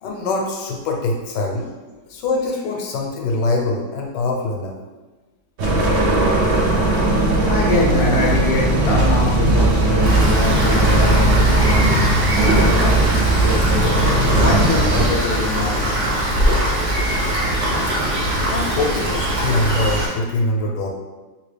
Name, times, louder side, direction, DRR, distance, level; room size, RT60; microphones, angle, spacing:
voice 1, 0.0-1.7 2.1-4.7 18.5-20.9, left 2 dB, 80° left, 0 dB, 1.2 m, -23 dB
sound 1, 5.6-15.1, right 2 dB, 80° right, 0.6 m, -17 dB
voice 2, 7.3-12.0 12.4-13.1 13.4-14.0 14.3-15.8, left 2 dB, 60° left, -3 dB, 0.6 m, -25 dB
Rain, 10.0-20.1, right 1 dB, 55° right, 1.0 m, -21 dB
2.9 x 2.8 x 3.3 m, 1.2 s
omnidirectional pair, 1.9 m